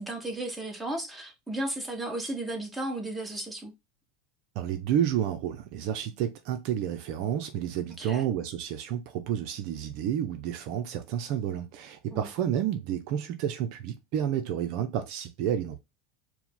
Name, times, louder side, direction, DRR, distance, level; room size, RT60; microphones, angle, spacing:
voice 1, 0.0-3.7 8.0-8.3 12.1-12.3, right 1 dB, 5° right, 1.4 m, -34 dB
voice 2, 4.6-15.8, right 10 dB, 60° right, 0.6 m, -30 dB
4.6 x 2.2 x 3.7 m
hypercardioid pair, 95°, 0 cm